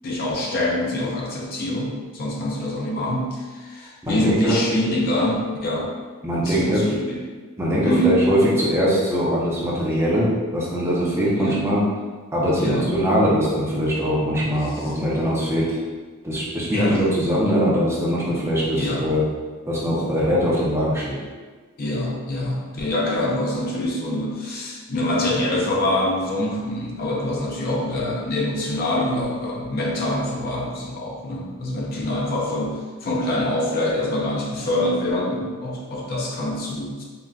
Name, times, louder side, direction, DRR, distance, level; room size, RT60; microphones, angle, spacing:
voice 1, 0.0-5.9 6.4-7.2 7.8-8.2 11.4-11.6 12.6-12.9 16.7-17.1 18.8-19.0 21.8-37.0, left 1 dB, 45° left, -2 dB, 0.4 m, -25 dB
voice 2, 4.0-4.6 6.2-6.9 7.6-11.8 12.3-15.8 16.2-19.2 19.7-21.2, equal, 10° right, -6 dB, 0.5 m, -21 dB
3.7 x 2.1 x 2.3 m, 1.4 s
head